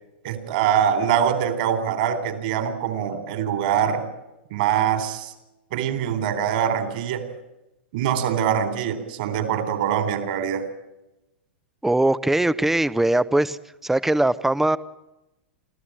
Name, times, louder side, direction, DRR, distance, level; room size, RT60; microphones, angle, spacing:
voice 1, 0.2-4.1 4.5-5.3 5.7-7.3 7.9-10.7, right 8 dB, 55° right, 9 dB, 3.7 m, -23 dB
voice 2, 11.8-13.6 13.8-14.8, right 1 dB, 5° right, 16 dB, 0.8 m, -20 dB
26.0 x 15.0 x 8.9 m, 0.95 s
figure-of-eight pair, 100°, 6 cm